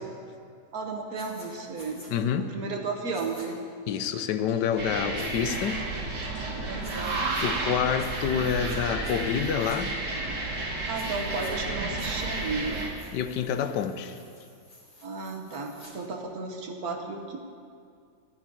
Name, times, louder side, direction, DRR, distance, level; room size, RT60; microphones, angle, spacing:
voice 1, 0.7-2.0 2.4-3.6 6.7-7.2 8.2-8.5 10.9-12.8 15.0-17.4, right 4 dB, 60° right, 3 dB, 1.6 m, -34 dB
sound 1, 1.1-1.5 1.7-2.1 3.1-3.5 5.1-5.6 6.8-7.5 8.0-8.8 9.0-9.8 10.9-11.5 12.0-15.9, left 1 dB, 20° left, 3.8 m, -51 dB
voice 2, 2.1-2.5 3.9-5.8 7.4-9.9 13.1-14.2, left 8 dB, 90° left, 9 dB, 1.3 m, -28 dB
sound 2, 4.8-12.9, right 2 dB, 90° right, 2.1 m, -31 dB
14.5 x 5.0 x 9.4 m, 2.3 s
omnidirectional pair, 1.8 m